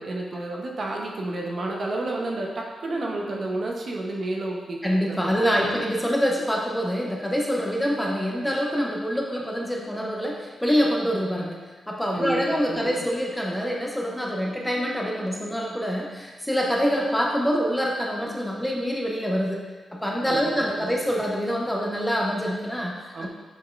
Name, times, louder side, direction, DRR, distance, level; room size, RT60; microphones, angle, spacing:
voice 1, 0.0-5.0 5.2-5.3 12.1-13.1 20.3-20.5 20.8-21.0 23.1-23.3, right 2 dB, 50° right, -1 dB, 0.9 m, -30 dB
voice 2, 4.8-11.6 11.9-23.3, equal, 5° left, -1 dB, 0.7 m, -25 dB
7.7 x 5.1 x 2.5 m, 1.3 s
wide cardioid pair, 145°, 0 cm